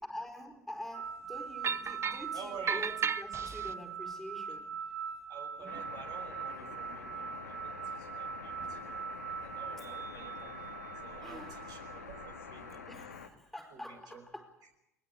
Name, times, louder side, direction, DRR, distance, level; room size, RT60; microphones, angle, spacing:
voice 1, 0.0-4.8 5.6-5.9 9.8-9.9 11.2-11.9 12.9-14.6, left 1 dB, ahead, 5 dB, 4.7 m, -46 dB
sound 1, 0.9-12.9, right 6 dB, 85° right, 2.6 m, -42 dB
sound 2, 1.6-2.3 2.7-3.7, right 7 dB, 30° right, 0.8 m, -34 dB
voice 2, 2.3-2.8 5.3-9.0 9.4-10.6 11.0-12.8 13.7-14.2, right 5 dB, 50° right, 5 dB, 5.9 m, -50 dB
sound 3, 5.7-13.3, left 6 dB, 85° left, 2.0 m, -47 dB
21.5 x 20.5 x 8.6 m, 0.88 s
hypercardioid pair, 70°, 9 cm